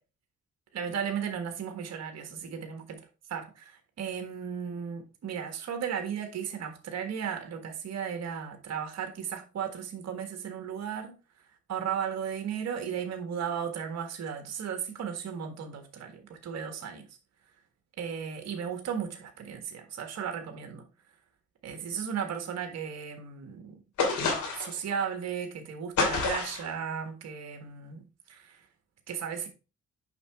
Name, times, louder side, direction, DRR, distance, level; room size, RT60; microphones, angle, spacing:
voice 1, 0.7-3.0 3.3-11.2 11.7-17.1 18.0-20.8 21.6-23.8 24.5-28.6 29.1-29.5, right 7 dB, 60° right, 1.5 m, -35 dB
sound 1, 24.0-24.8 26.0-26.7, left 4 dB, 70° left, 3.1 m, -28 dB
7.0 x 5.6 x 3.6 m
cardioid pair, 90°, 30 cm